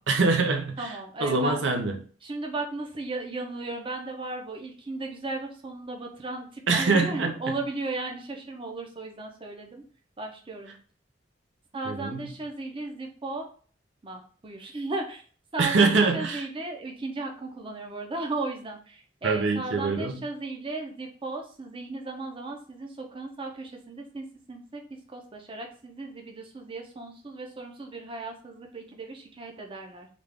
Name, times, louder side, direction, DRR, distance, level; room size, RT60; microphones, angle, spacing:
voice 1, 0.0-2.0 6.7-7.5 11.8-12.3 15.6-16.5 19.2-20.3, right 3 dB, 80° right, 0.6 m, -24 dB
voice 2, 0.8-1.6 2.2-9.8 10.2-10.8 11.7-13.5 14.0-15.2 15.5-24.8 25.1-30.1, right 2 dB, 30° right, 0.6 m, -36 dB
3.4 x 2.4 x 3.4 m
head